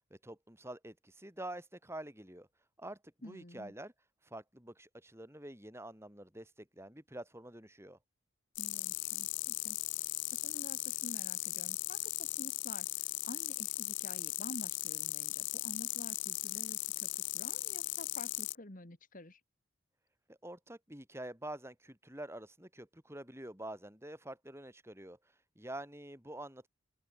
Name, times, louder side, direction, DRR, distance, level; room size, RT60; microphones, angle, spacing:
voice 1, 0.1-2.5 2.8-3.9 4.2-8.0 20.3-25.2 25.6-26.7, right 1 dB, 10° right, 5.7 m, -47 dB
voice 2, 3.2-3.7 8.6-19.4, left 1 dB, 40° left, 1.9 m, -50 dB
sound 1, 8.6-18.6, left 17 dB, 60° left, 1.1 m, -37 dB
open air
head